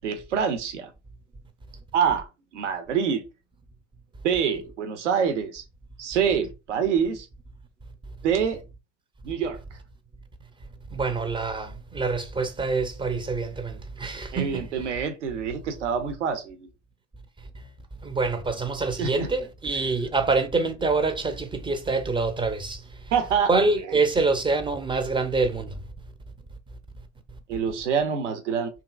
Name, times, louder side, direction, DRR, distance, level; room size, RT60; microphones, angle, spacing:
voice 1, 0.0-0.9 1.9-2.3 2.5-3.2 4.2-5.6 6.0-7.3 8.2-8.6 9.2-9.6 14.3-16.7 19.0-19.3 23.1-23.5 23.9-24.0 27.5-28.7, right 7 dB, 85° right, 0.5 m, -26 dB
voice 2, 10.9-14.7 18.0-22.8 23.5-25.8, right 3 dB, 15° right, 0.4 m, -26 dB
2.8 x 2.4 x 2.3 m
figure-of-eight pair, 65°, 35 cm